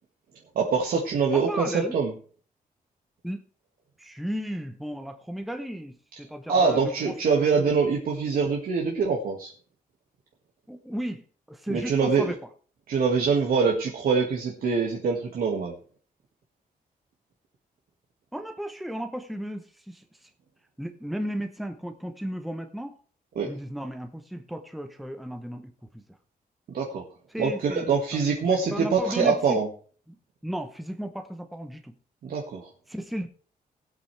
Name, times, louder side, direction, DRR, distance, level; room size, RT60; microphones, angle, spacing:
voice 1, 0.6-2.1 6.5-9.5 11.7-12.3 12.9-15.7 23.4-23.5 26.7-27.0 27.4-29.7 32.2-32.7, right 5 dB, 75° right, -1 dB, 1.9 m, -24 dB
voice 2, 1.3-2.0 3.2-3.4 4.0-7.7 10.7-12.4 18.3-20.3 20.8-23.0 23.4-26.0 27.3-29.6 30.4-31.9 32.9-33.3, equal, ahead, 7 dB, 0.8 m, -35 dB
19.5 x 8.3 x 3.3 m, 0.41 s
wide cardioid pair, 155°, 15 cm